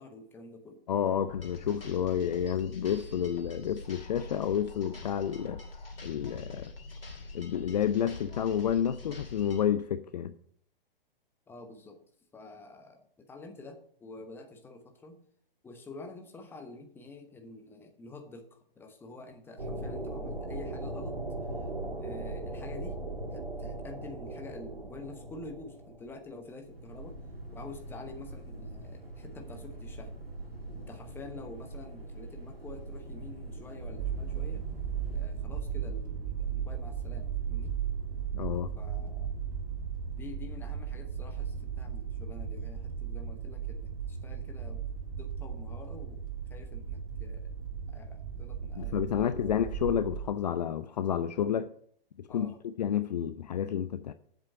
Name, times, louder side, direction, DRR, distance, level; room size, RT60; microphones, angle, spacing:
voice 1, 0.0-0.8 11.5-12.0 12.3-15.2 15.6-21.2 21.5-21.7 22.0-23.0 23.3-27.2 27.5-30.1 30.7-34.6 35.1-37.8 38.7-39.3 40.2-44.9 45.2-47.5 47.9-49.6 52.3-52.6, left 3 dB, 5° left, 1.0 m, -48 dB
voice 2, 0.9-5.6 6.0-6.7 7.3-10.3 38.3-38.7 48.8-51.7 52.2-54.1, left 9 dB, 45° left, 0.5 m, -30 dB
sound 1, 1.3-9.6, left 3 dB, 75° left, 2.4 m, -44 dB
sound 2, 19.6-35.2, right 2 dB, 85° right, 1.9 m, -40 dB
sound 3, 34.0-50.3, right 7 dB, 40° right, 1.7 m, -36 dB
7.8 x 7.4 x 6.3 m
figure-of-eight pair, 120°, 29 cm